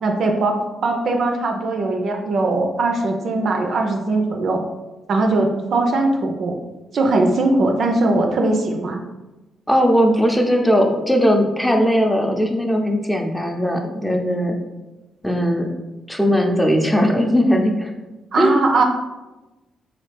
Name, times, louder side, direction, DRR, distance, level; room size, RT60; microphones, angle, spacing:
voice 1, 0.0-4.6 5.1-6.6 6.9-9.0 18.3-18.8, right 2 dB, 60° right, 2 dB, 0.4 m, -20 dB
voice 2, 9.7-14.6 15.2-15.7 16.1-17.9 18.4-18.6, equal, 5° left, 2 dB, 0.6 m, -18 dB
3.2 x 2.3 x 3.2 m, 1.1 s
hypercardioid pair, 40°, 0 cm